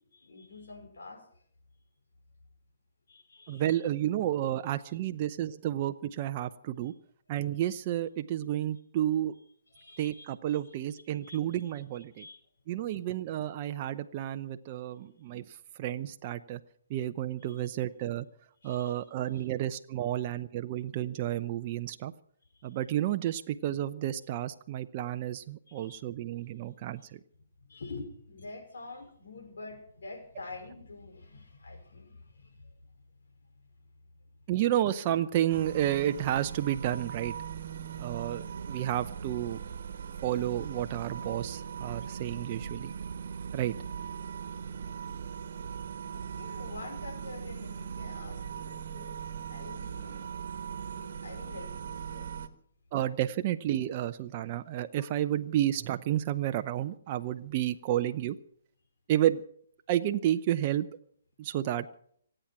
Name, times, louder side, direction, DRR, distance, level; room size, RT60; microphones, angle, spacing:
voice 1, 0.1-1.3 3.1-3.9 6.8-6.9 9.7-10.7 11.2-11.8 12.1-12.4 17.5-17.6 18.6-19.5 22.7-22.8 25.7-26.1 27.0-27.1 27.7-32.7 44.7-45.2 46.1-49.1 49.5-50.3 50.6-52.3, left 3 dB, 75° left, 4 dB, 5.2 m, -47 dB
voice 2, 3.5-6.9 7.3-9.3 10.0-12.2 12.7-15.4 15.8-16.6 16.9-18.2 18.6-22.1 22.6-27.0 34.5-37.3 38.0-39.6 40.2-42.9 43.5-43.7 52.9-58.4 59.1-59.4 59.9-60.9 61.4-61.9, right 12 dB, 40° right, 8 dB, 0.6 m, -31 dB
sound 1, 35.5-52.5, right 7 dB, 60° right, 1.4 m, -39 dB
26.0 x 9.0 x 6.0 m, 0.64 s
hypercardioid pair, 140°, 0 cm